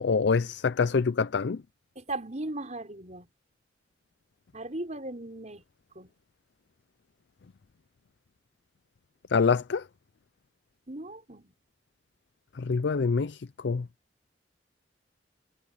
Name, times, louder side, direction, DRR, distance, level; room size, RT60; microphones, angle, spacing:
voice 1, 0.0-1.6 9.3-9.8 12.6-13.4 13.6-13.8, left 5 dB, 70° left, 0.5 m, -25 dB
voice 2, 2.0-3.3 4.5-5.6 6.0-6.1 10.9-11.5, right 2 dB, 40° right, 5.7 m, -37 dB
head